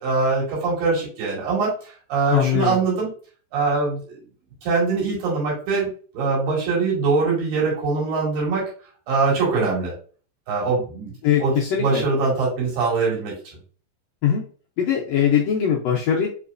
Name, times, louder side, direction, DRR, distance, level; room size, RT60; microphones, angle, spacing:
voice 1, 0.0-1.7 2.1-3.1 3.5-4.2 4.6-8.6 9.1-9.9 10.5-11.1 11.4-13.3, right 4 dB, 90° right, -6 dB, 3.8 m, -22 dB
voice 2, 2.3-2.8 11.2-12.0 14.2-14.4 14.8-16.3, left 8 dB, 80° left, -3 dB, 1.5 m, -21 dB
6.4 x 3.1 x 2.5 m, 0.41 s
omnidirectional pair, 3.9 m